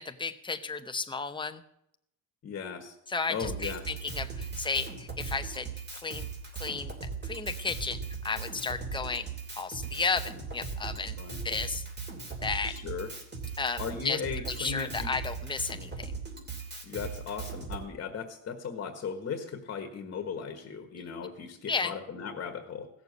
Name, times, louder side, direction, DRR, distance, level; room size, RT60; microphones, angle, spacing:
voice 1, 0.0-1.6 3.1-5.7 6.0-6.3 6.5-6.9 7.2-9.3 9.6-11.2 11.4-11.9 12.4-12.8 13.6-16.1 21.7-22.0, left 4 dB, 15° left, 8 dB, 0.8 m, -33 dB
voice 2, 2.4-2.9 3.3-3.8 11.2-11.4 12.6-13.1 13.8-15.1 16.8-22.9, left 6 dB, 35° left, 5 dB, 1.6 m, -37 dB
Drum kit, 3.4-17.8, right 5 dB, 25° right, 2.9 m, -39 dB
16.5 x 7.0 x 8.1 m, 0.76 s
cardioid pair, 150°, 38 cm